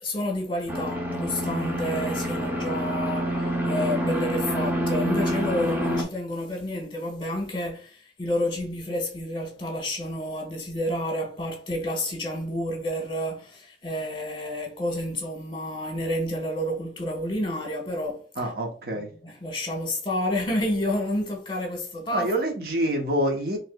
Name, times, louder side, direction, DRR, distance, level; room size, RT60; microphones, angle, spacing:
voice 1, 0.0-18.5 18.9-22.3, left 1 dB, 30° left, 1.3 m, -30 dB
sound 1, 0.7-6.0, equal, 10° right, 0.8 m, -27 dB
voice 2, 18.4-19.1 22.1-23.6, right 1 dB, 60° right, 1.0 m, -26 dB
4.7 x 3.1 x 2.3 m
head